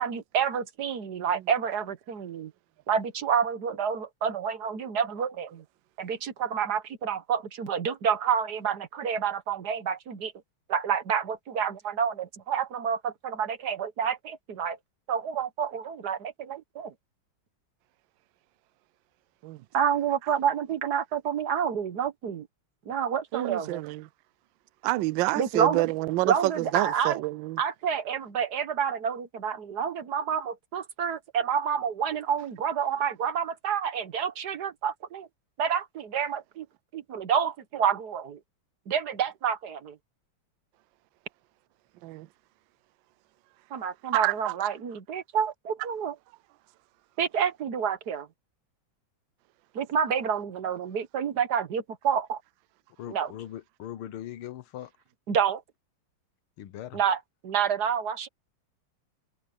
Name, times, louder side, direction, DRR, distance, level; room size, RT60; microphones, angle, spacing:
voice 1, 0.0-2.5 2.9-5.6 6.0-10.3 10.7-14.8 15.1-16.9 19.7-22.5 22.9-23.8 25.3-25.9 26.2-27.2 27.6-35.3 35.6-36.6 36.9-38.4 38.9-40.0 43.7-46.1 47.2-48.3 49.7-52.4 53.1-53.3 55.3-55.6 56.9-58.3, right 7 dB, 55° right, 1.6 m, -28 dB
voice 2, 23.3-24.1 24.8-27.6 42.0-42.3 44.1-44.5, right 19 dB, 75° right, 1.2 m, -28 dB
voice 3, 53.0-54.9 56.6-57.0, left 11 dB, 85° left, 1.8 m, -40 dB
omnidirectional pair, 2.3 m